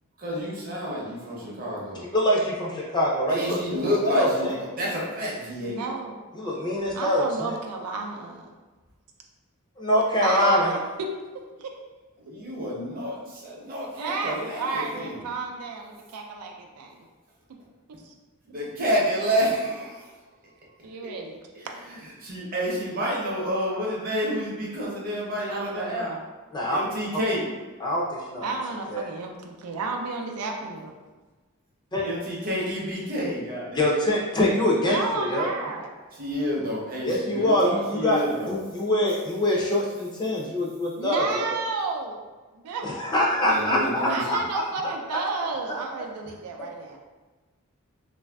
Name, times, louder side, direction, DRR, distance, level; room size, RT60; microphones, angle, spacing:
voice 1, 0.2-2.0 3.3-5.8 12.2-15.1 18.5-20.0 22.2-26.1 26.7-27.4 32.0-33.9 36.2-38.6 43.4-44.2, equal, 40° right, -4 dB, 0.7 m, -29 dB
voice 2, 2.1-4.5 6.4-7.5 9.8-10.7 26.5-26.8 27.8-28.5 28.9-29.1 31.9-32.0 33.7-35.5 37.0-38.2 38.5-41.6 42.8-44.6, left 1 dB, 20° left, -4 dB, 0.4 m, -24 dB
voice 3, 5.6-6.2 6.9-8.5 10.2-11.1 11.6-11.7 14.0-17.0 18.0-18.1 19.9-20.0 20.8-21.4 25.4-26.2 28.4-30.9 34.9-35.9 41.0-42.2 42.5-42.9 43.5-43.6 44.1-47.0, right 4 dB, 85° right, 1 dB, 0.4 m, -32 dB
3.1 x 2.5 x 2.2 m, 1.3 s
head